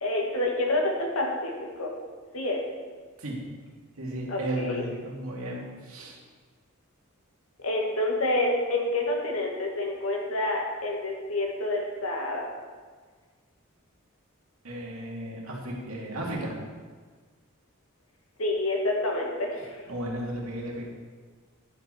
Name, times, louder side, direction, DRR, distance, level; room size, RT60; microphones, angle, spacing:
voice 1, 0.0-1.9 2.3-2.6 4.3-4.8 7.6-12.5 18.4-19.8, left 1 dB, 80° left, 0 dB, 2.0 m, -28 dB
voice 2, 4.0-6.2 14.6-16.5 19.9-20.8, right 1 dB, 80° right, -3 dB, 2.4 m, -34 dB
11.0 x 7.7 x 4.5 m, 1.5 s
head